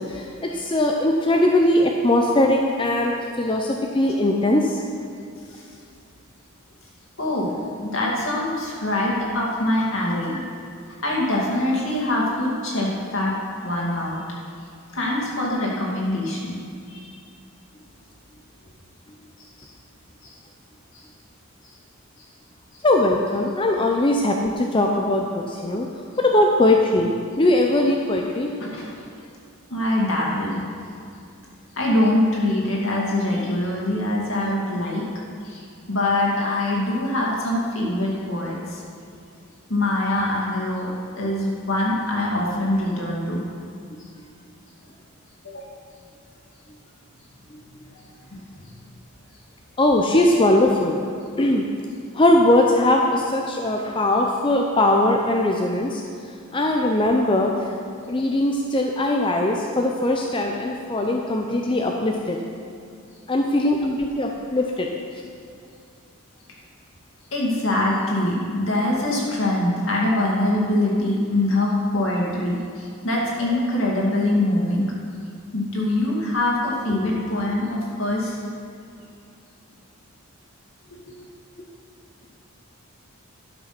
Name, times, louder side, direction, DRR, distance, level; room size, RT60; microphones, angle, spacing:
voice 1, 0.1-4.8 22.8-25.9 26.2-27.1 27.4-28.5 49.8-51.0 51.4-51.7 52.1-56.0 56.5-57.5 58.1-62.4 63.3-64.9, left 1 dB, 25° left, 1 dB, 0.5 m, -20 dB
voice 2, 7.2-7.5 7.8-10.4 11.0-13.3 13.6-14.2 14.9-16.6 16.9-17.1 19.4-19.7 20.2-20.3 20.9-21.0 22.2-22.3 28.6-28.9 29.7-30.6 31.8-35.1 35.4-38.8 39.7-40.9 41.2-43.5 45.4-45.8 47.9-48.0 48.3-48.6 67.3-74.9 75.5-78.4 80.9-81.0, left 1 dB, 65° left, -3 dB, 2.3 m, -24 dB
12.0 x 6.1 x 5.9 m, 2.5 s
head